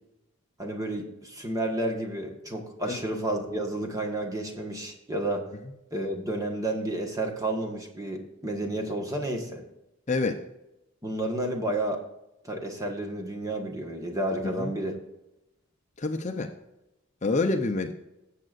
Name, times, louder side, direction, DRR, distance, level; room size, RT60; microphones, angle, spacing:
voice 1, 0.6-5.4 5.9-9.6 11.0-12.0 12.4-14.9, right 1 dB, 15° right, 1 dB, 1.4 m, -31 dB
voice 2, 10.1-10.4 14.5-14.7 16.0-16.5 17.2-17.9, left 3 dB, 35° left, 5 dB, 0.6 m, -27 dB
17.0 x 7.6 x 2.5 m, 0.93 s
head